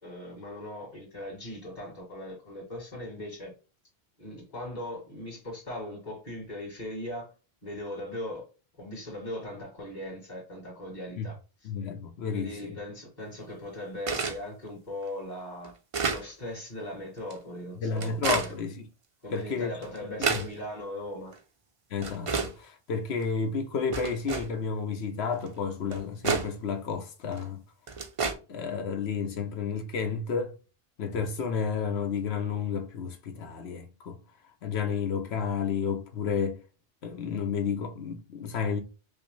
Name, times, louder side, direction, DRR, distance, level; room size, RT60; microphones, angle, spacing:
voice 1, 0.0-3.5 4.2-7.3 7.6-8.4 8.8-11.7 12.3-15.7 16.1-18.5 19.2-21.3, left 1 dB, 45° left, 2.3 m, -39 dB
voice 2, 11.6-12.8 17.8-18.9 19.3-19.7 20.2-20.4 21.9-27.6 28.5-30.6 31.0-34.2 34.6-36.6 37.0-38.8, left 6 dB, 80° left, 1.1 m, -31 dB
sound 1, 14.1-14.4 15.0-15.1 15.6-16.2 17.2-17.3 18.0-18.5 19.4-19.5 19.8-20.5 21.3-21.4 22.0-22.5 23.2-23.3 23.9-24.5 25.5-25.6 25.9-26.5 27.3-27.4 27.9-28.3, right 5 dB, 40° right, 0.5 m, -29 dB
5.3 x 2.0 x 3.1 m
omnidirectional pair, 1.1 m